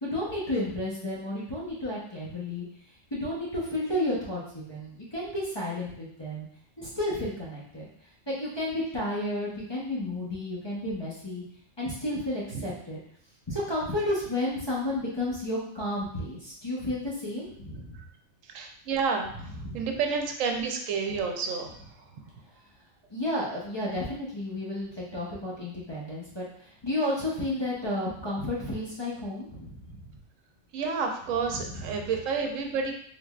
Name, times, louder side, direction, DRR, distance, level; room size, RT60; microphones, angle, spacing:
voice 1, 0.0-2.6 3.1-6.5 6.8-7.9 8.3-11.4 11.8-13.0 13.5-17.9 19.5-19.8 23.1-30.1 31.5-31.6, left 1 dB, 25° left, -6 dB, 0.8 m, -32 dB
voice 2, 18.5-21.8 30.7-33.0, right 5 dB, 85° right, 3 dB, 1.0 m, -30 dB
3.8 x 3.3 x 2.4 m, 0.63 s
omnidirectional pair, 1.3 m